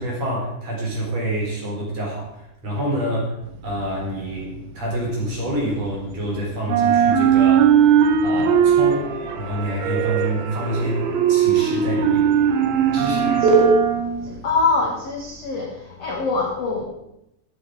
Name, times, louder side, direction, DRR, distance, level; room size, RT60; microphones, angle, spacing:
voice 1, 0.0-3.4 3.6-7.8 8.2-9.1 9.4-12.3 12.9-13.4, right 1 dB, 35° right, -3 dB, 4.6 m, -27 dB
sound 1, 3.4-6.3 6.6-14.7, right 8 dB, 70° right, 2.6 m, -20 dB
sound 2, 7.7-8.3 8.5-13.7, right 5 dB, 90° right, 4.6 m, -26 dB
voice 2, 14.2-16.8, left 3 dB, 55° left, -1 dB, 1.8 m, -24 dB
15.5 x 8.4 x 4.8 m, 0.84 s
omnidirectional pair, 5.1 m